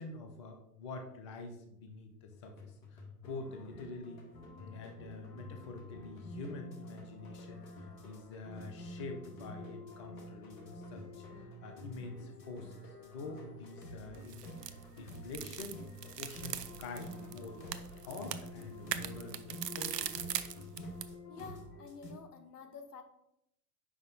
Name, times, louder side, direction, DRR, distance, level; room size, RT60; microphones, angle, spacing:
voice 1, 0.0-4.2 4.6-14.5 14.9-15.8 16.2-17.6 18.0-20.3, left 3 dB, 25° left, 4 dB, 0.3 m, -46 dB
sound 1, 2.3-22.0, left 3 dB, 55° left, 1.8 m, -55 dB
sound 2, 3.2-22.1, equal, 90° left, 1.3 m, -49 dB
sound 3, 14.1-21.1, right 10 dB, 80° right, 0.6 m, -42 dB
voice 2, 21.3-23.0, left 5 dB, 75° left, 8 dB, 1.1 m, -49 dB
5.7 x 5.2 x 3.9 m, 0.83 s
hypercardioid pair, 110°, 48 cm